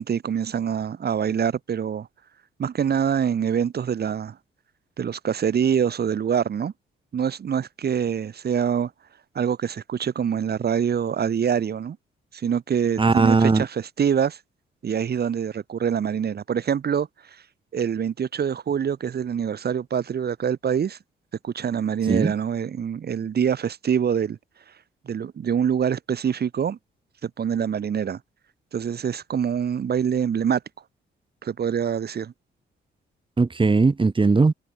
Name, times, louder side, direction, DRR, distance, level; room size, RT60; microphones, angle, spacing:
voice 1, 0.0-2.1 2.6-4.4 5.0-6.7 7.1-8.9 9.3-12.0 12.3-14.4 14.8-17.1 17.7-21.0 21.4-24.4 25.0-26.8 27.2-28.2 28.7-30.6 31.4-32.3, right 8 dB, 55° right, 6.9 m, -25 dB
voice 2, 13.0-13.7 22.1-22.3 33.4-34.5, right 3 dB, 25° right, 4.3 m, -19 dB
cardioid pair, 90°, 20 cm